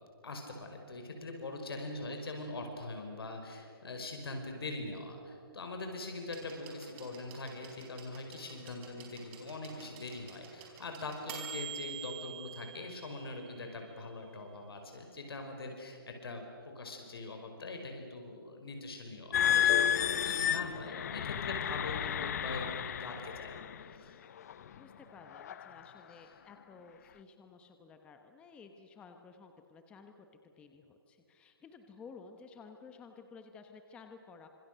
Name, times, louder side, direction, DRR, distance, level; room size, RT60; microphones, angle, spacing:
voice 1, 0.2-16.5 16.8-23.5 23.9-24.1 26.1-26.3, left 2 dB, 80° left, 4 dB, 5.3 m, -42 dB
voice 2, 1.8-2.2 24.8-34.5, left 5 dB, 10° left, 6 dB, 1.0 m, -54 dB
sound 1, 6.3-14.1 15.2-15.3, right 8 dB, 25° right, 4.6 m, -48 dB
sound 2, 19.3-23.8 24.5-24.7 25.3-25.7, left 10 dB, 45° left, 0.8 m, -31 dB
29.0 x 26.0 x 6.8 m, 2.6 s
hypercardioid pair, 165°, 12 cm